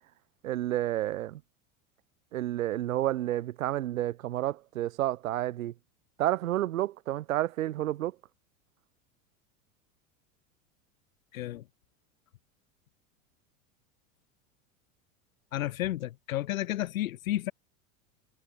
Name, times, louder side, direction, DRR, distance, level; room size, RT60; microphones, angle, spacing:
voice 1, 0.4-1.4 2.3-5.7 6.2-8.1, right 14 dB, 85° right, 6.9 m, -30 dB
voice 2, 11.3-11.6 15.5-17.5, left 14 dB, 85° left, 3.0 m, -32 dB
supercardioid pair, 110°, 40 cm